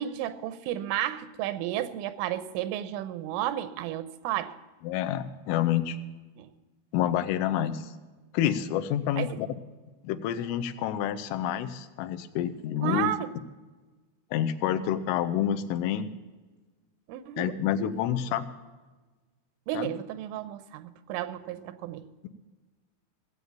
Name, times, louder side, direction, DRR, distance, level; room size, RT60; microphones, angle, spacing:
voice 1, 0.0-4.5 6.4-6.5 7.5-7.6 9.2-9.4 12.8-13.3 17.1-17.5 19.7-22.1, right 12 dB, 90° right, 13 dB, 3.3 m, -32 dB
voice 2, 4.8-6.0 6.9-7.9 8.3-9.5 10.0-13.1 14.3-16.1 17.4-18.5 19.7-19.9, left 10 dB, 85° left, 9 dB, 3.3 m, -28 dB
17.5 x 8.1 x 7.0 m, 1.3 s
omnidirectional pair, 5.6 m